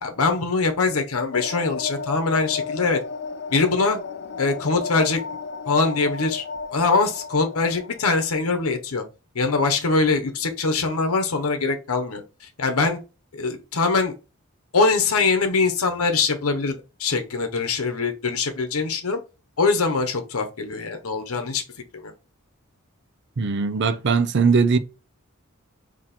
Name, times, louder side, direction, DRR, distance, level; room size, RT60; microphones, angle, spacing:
voice 1, 0.0-3.0 3.5-4.0 4.4-5.2 5.7-6.4 6.7-9.0 9.3-13.0 13.3-14.1 14.7-19.2 19.6-21.6 21.9-22.1, left 4 dB, 85° left, 0.9 m, -23 dB
sound 1, 1.3-8.3, left 5 dB, 50° left, 0.4 m, -33 dB
voice 2, 23.4-24.8, right 5 dB, 55° right, 0.5 m, -20 dB
4.1 x 2.9 x 4.2 m
head